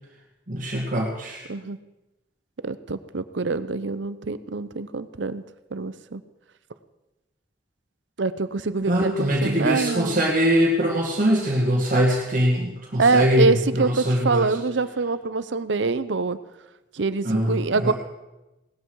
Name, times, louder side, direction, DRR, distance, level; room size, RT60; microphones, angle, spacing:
voice 1, 0.5-1.4 8.8-14.6 17.2-17.9, equal, 45° right, -2 dB, 2.1 m, -22 dB
voice 2, 2.6-5.4 5.7-6.2 8.2-10.2 13.0-16.4 16.9-17.9, right 4 dB, 85° right, 14 dB, 0.7 m, -25 dB
18.0 x 13.0 x 4.7 m, 1.0 s
head